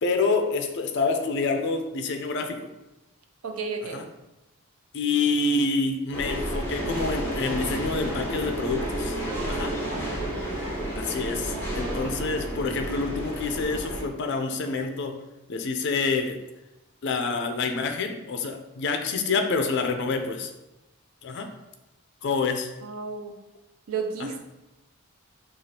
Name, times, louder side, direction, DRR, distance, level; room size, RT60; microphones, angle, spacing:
voice 1, 0.0-2.6 3.8-4.0 4.9-9.2 9.5-9.7 11.0-15.1 15.5-16.4 17.0-20.5 21.2-21.5 22.2-22.7, left 4 dB, 55° left, 5 dB, 0.4 m, -27 dB
voice 2, 3.4-4.0 11.5-12.4 22.8-23.4 23.9-24.4, right 4 dB, 75° right, 4 dB, 0.5 m, -33 dB
sound 1, 6.1-14.0, right 1 dB, 10° left, 0.8 m, -31 dB
4.9 x 2.4 x 2.8 m, 0.98 s
head